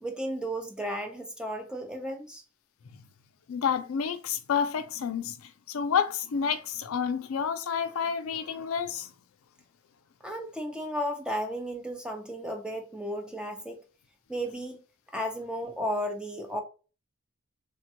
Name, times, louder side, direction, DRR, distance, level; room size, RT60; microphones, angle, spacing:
voice 1, 0.0-2.4 10.2-13.8 14.3-14.8 15.1-16.6, equal, 5° right, 0.5 m, -34 dB
voice 2, 3.5-9.1, left 7 dB, 75° left, 0.4 m, -29 dB
3.4 x 2.2 x 2.7 m
head